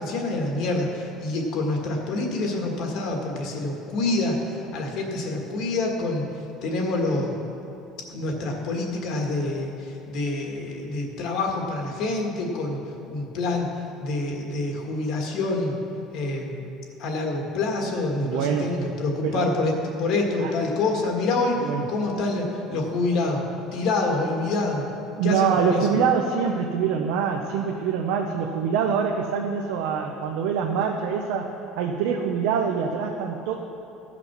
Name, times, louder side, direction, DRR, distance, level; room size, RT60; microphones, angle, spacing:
voice 1, 0.0-6.3 6.6-7.3 8.1-12.8 13.1-13.7 14.0-15.8 16.1-16.6 17.0-19.7 20.0-21.6 21.9-23.4 23.7-24.9 25.2-25.9, left 2 dB, 50° left, 1 dB, 1.7 m, -26 dB
voice 2, 18.2-18.7 19.2-19.5 20.4-20.5 21.6-21.9 25.2-31.5 31.8-33.5, right 7 dB, 75° right, 2 dB, 0.8 m, -25 dB
15.0 x 6.1 x 6.0 m, 2.7 s
cardioid pair, 175°, 0 cm